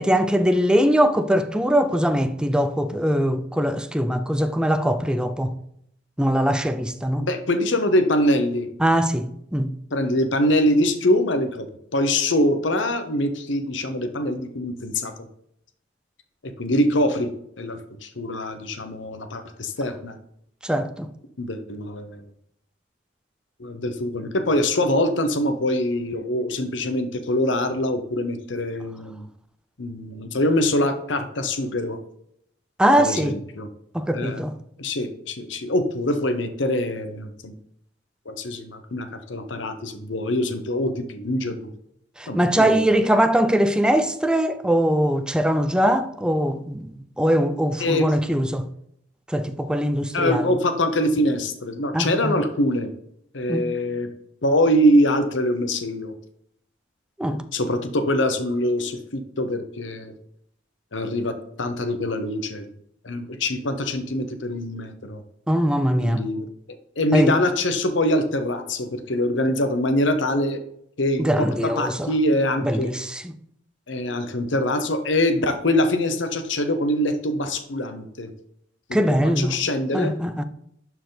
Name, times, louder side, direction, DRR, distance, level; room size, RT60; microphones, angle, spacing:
voice 1, 0.0-5.5 6.2-7.3 8.8-9.7 20.6-21.1 32.8-33.4 33.9-34.5 42.2-48.7 49.3-50.5 51.9-52.4 53.5-53.7 57.2-57.4 65.5-66.3 67.1-67.4 71.2-72.1 72.6-73.3 78.9-79.6 79.9-80.4, equal, 5° right, 0.4 m, -21 dB
voice 2, 7.2-8.7 9.9-11.7 11.9-15.1 16.4-17.3 17.6-20.1 21.4-22.2 23.6-29.3 29.8-32.0 33.0-33.7 34.1-34.4 34.8-37.5 38.3-41.7 42.3-42.8 47.8-48.1 50.1-52.9 53.3-54.1 54.4-56.1 57.5-60.1 60.9-62.6 63.0-65.2 66.0-66.5 67.0-70.6 71.0-72.9 73.9-78.3 78.9-80.1, left 1 dB, 70° left, 1.0 m, -24 dB
11.5 x 4.7 x 4.0 m
head